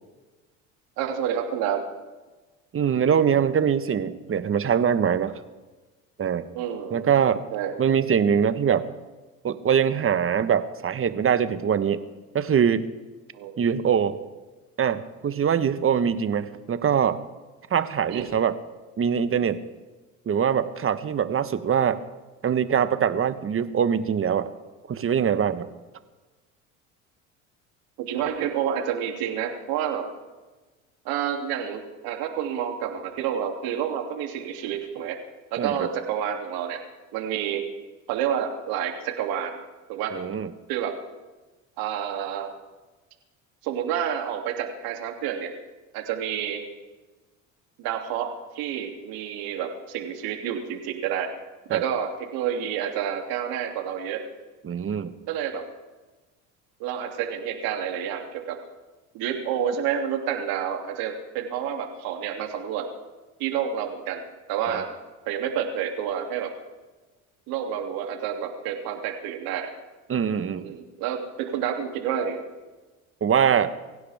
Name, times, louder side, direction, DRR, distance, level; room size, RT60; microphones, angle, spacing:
voice 1, 1.0-1.8 6.5-7.0 7.5-7.8 13.3-13.5 18.1-18.3 28.0-30.1 31.0-35.2 35.5-36.8 37.1-37.6 38.1-39.6 39.9-40.2 40.7-41.0 41.8-42.5 43.6-45.5 45.9-46.6 47.8-51.3 51.7-54.2 55.3-55.6 56.8-58.6 59.1-62.9 63.4-64.9 65.3-66.5 67.5-69.7 70.6-72.4, right 9 dB, 65° right, 3 dB, 2.9 m, -29 dB
voice 2, 2.7-5.3 6.2-6.5 6.9-7.4 7.8-8.8 9.4-12.0 12.3-12.9 13.6-14.2 14.8-17.2 17.7-18.5 19.0-19.6 20.3-22.0 22.4-24.5 24.9-25.7 35.6-35.9 40.1-40.5 51.7-51.8 54.6-55.1 64.7-64.8 70.1-70.7 73.2-73.7, right 8 dB, 35° right, 12 dB, 1.3 m, -23 dB
24.5 x 16.0 x 3.6 m, 1.2 s
hypercardioid pair, 70°, 39 cm